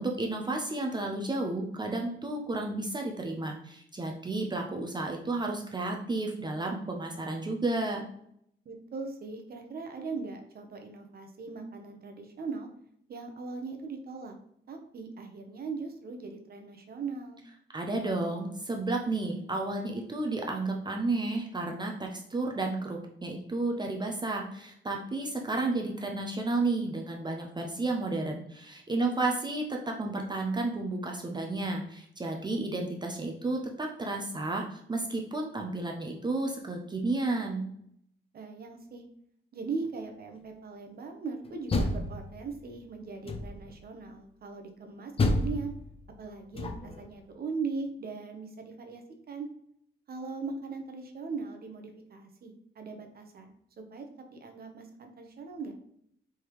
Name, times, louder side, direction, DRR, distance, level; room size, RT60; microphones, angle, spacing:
voice 1, 0.0-8.0 17.7-37.6, right 2 dB, 20° right, 1 dB, 0.5 m, -32 dB
voice 2, 8.6-12.7 13.1-14.4 14.7-17.4 29.0-29.2 38.3-39.0 39.5-45.7 46.2-49.5 50.1-53.5 53.9-54.0 54.3-55.8, right 4 dB, 50° right, 4 dB, 0.8 m, -39 dB
Door, 41.4-42.7 43.2-43.8 45.2-47.1, left 2 dB, 30° left, 0.5 m, -30 dB
4.7 x 3.5 x 3.0 m, 0.70 s
wide cardioid pair, 160°, 20 cm